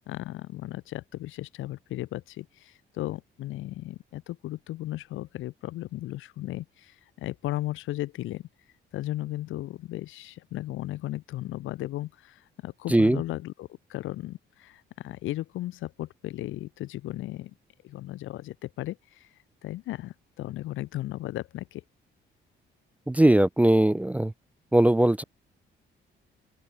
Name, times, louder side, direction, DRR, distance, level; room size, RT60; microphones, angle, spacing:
voice 1, 0.1-8.5 8.9-17.5 17.8-21.8, left 15 dB, 90° left, 3.0 m, -36 dB
voice 2, 23.1-24.3 24.7-25.2, right 1 dB, 5° right, 0.3 m, -20 dB
open air
cardioid pair, 90°, 20 cm